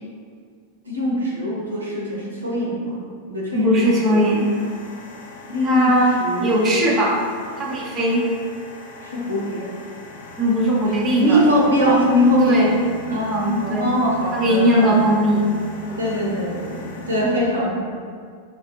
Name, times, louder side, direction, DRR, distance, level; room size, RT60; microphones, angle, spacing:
voice 1, 0.8-4.3 5.5-5.9 6.2-6.9 9.0-9.7 11.2-12.7 13.0-15.1 16.0-17.8, equal, 75° right, -4 dB, 0.7 m, -22 dB
voice 2, 3.5-4.5 5.6-7.2 7.6-8.2 10.4-11.4 12.4-12.7 13.1-13.9 14.3-15.6 15.9-16.0, equal, 25° right, -3 dB, 0.6 m, -19 dB
sound 1, 3.8-17.2, left 1 dB, 70° left, 0.5 m, -39 dB
4.9 x 2.4 x 2.8 m, 2.1 s
figure-of-eight pair, 90°, 0 cm